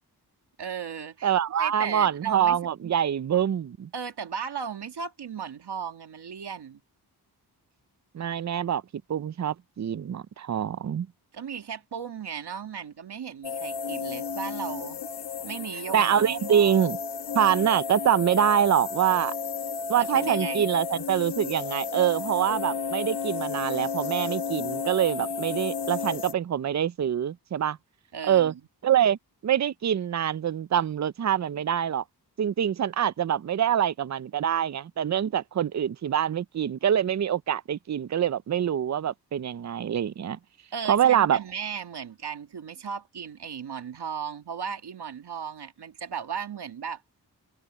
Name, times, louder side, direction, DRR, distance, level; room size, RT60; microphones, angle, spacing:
voice 1, 0.6-1.3 1.6-2.9 3.9-6.8 11.3-15.0 15.4-16.8 17.5-17.8 20.0-20.7 28.1-28.6 40.7-47.0, right 7 dB, 75° right, 2.3 m, -36 dB
voice 2, 1.2-3.9 8.1-8.8 9.1-11.1 15.9-17.0 17.3-19.3 19.9-27.8 28.3-28.5 28.8-29.2 29.4-32.0 32.4-40.4 40.9-41.4, right 9 dB, 45° right, 0.6 m, -25 dB
sound 1, 13.4-26.3, left 5 dB, 90° left, 1.3 m, -33 dB
cardioid pair, 70°, 40 cm